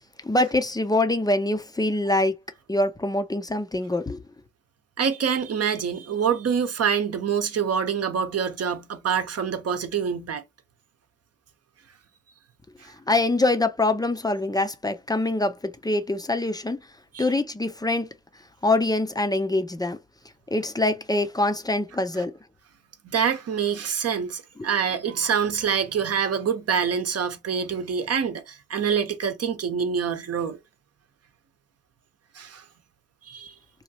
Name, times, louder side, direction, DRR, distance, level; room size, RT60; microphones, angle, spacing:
voice 1, 0.2-2.4 2.7-4.2 13.1-16.8 17.2-18.1 18.6-20.0 20.5-22.3, left 2 dB, 15° left, 0.6 m, -24 dB
voice 2, 5.0-10.4 12.8-12.9 17.1-17.3 23.0-30.6 32.3-32.6 33.2-33.5, right 7 dB, 55° right, 0.8 m, -26 dB
3.1 x 2.3 x 2.8 m
supercardioid pair, 55°, 30 cm